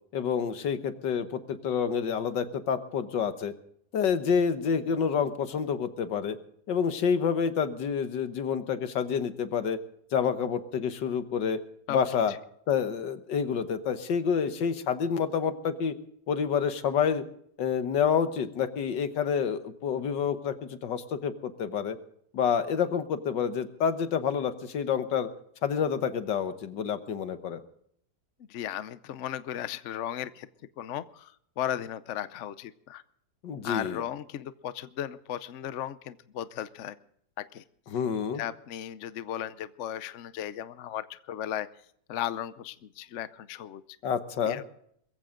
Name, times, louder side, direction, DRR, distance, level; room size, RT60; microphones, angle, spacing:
voice 1, 0.1-3.5 3.9-6.4 6.7-9.8 10.1-11.6 11.9-12.3 12.7-16.0 16.3-17.2 17.6-22.0 22.3-25.3 25.6-27.6 33.4-34.0 37.9-38.4 44.0-44.6, left 7 dB, 80° left, 10 dB, 1.8 m, -28 dB
voice 2, 28.5-30.5 30.8-33.0 33.6-37.0 37.4-37.6 38.3-41.7 42.1-43.8 44.5-44.6, left 11 dB, 60° left, 14 dB, 0.8 m, -36 dB
22.0 x 15.0 x 3.8 m, 0.67 s
omnidirectional pair, 1.9 m